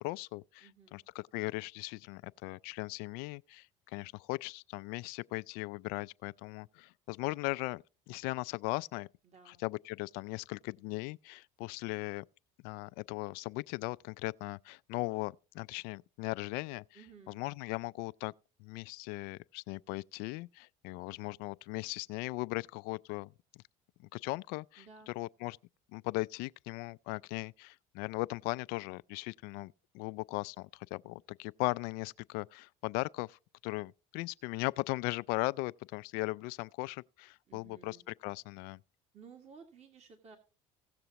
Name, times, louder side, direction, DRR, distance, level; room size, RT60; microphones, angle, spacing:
voice 1, 0.0-9.1 9.6-12.2 12.6-16.8 17.3-18.3 18.6-23.6 24.1-25.6 25.9-38.0 38.2-38.8, left 22 dB, 75° left, 0.4 m, -38 dB
voice 2, 0.6-1.0 9.2-9.7 16.9-17.4 24.8-25.1 37.5-38.0 39.1-40.4, right 5 dB, 45° right, 2.0 m, -55 dB
17.0 x 6.8 x 2.9 m
supercardioid pair, 90°, 16 cm